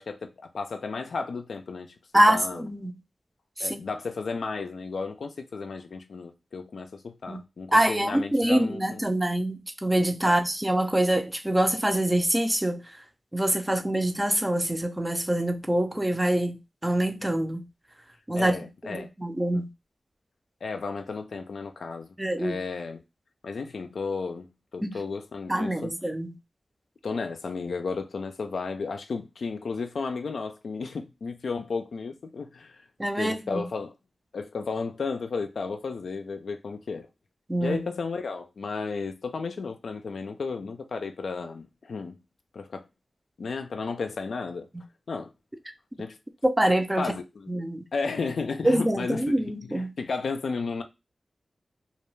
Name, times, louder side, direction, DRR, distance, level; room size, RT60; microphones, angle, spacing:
voice 1, 0.0-2.0 2.3-2.7 3.6-9.0 10.2-10.4 18.3-19.1 19.5-19.6 20.6-23.0 23.4-24.5 24.7-25.9 27.0-32.8 33.2-33.9 34.3-37.1 37.6-42.2 42.5-42.9 43.4-44.7 45.1-45.3 46.0-46.2 47.0-47.6 47.9-49.4 49.7-50.8, left 4 dB, 85° left, 0.3 m, -33 dB
voice 2, 2.1-2.9 3.6-3.8 7.3-7.4 7.7-12.8 13.3-17.7 18.3-18.5 18.8-19.7 22.2-22.6 24.8-24.9 25.5-26.4 33.0-33.6 37.5-37.8 46.4-47.0 47.5-47.8 48.6-49.9, right 1 dB, 15° right, 0.5 m, -25 dB
2.3 x 2.2 x 3.1 m
cardioid pair, 50°, 0 cm